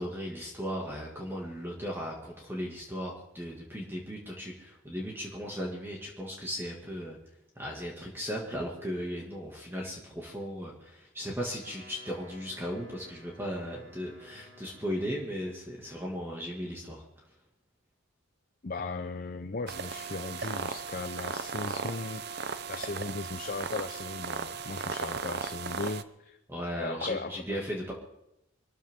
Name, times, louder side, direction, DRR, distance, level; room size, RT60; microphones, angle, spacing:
voice 1, 0.0-7.2 7.6-17.0 26.5-27.9, equal, 10° right, -2 dB, 2.1 m, -36 dB
Wind instrument woodwind instrument, 11.5-15.3, left 1 dB, 70° right, 7.1 m, -55 dB
voice 2, 18.6-26.4 26.7-27.4, left 3 dB, 45° left, 8 dB, 0.6 m, -37 dB
sound 1, 19.7-26.0, right 5 dB, 50° right, 0.6 m, -36 dB
24.0 x 13.5 x 3.7 m, 0.86 s
head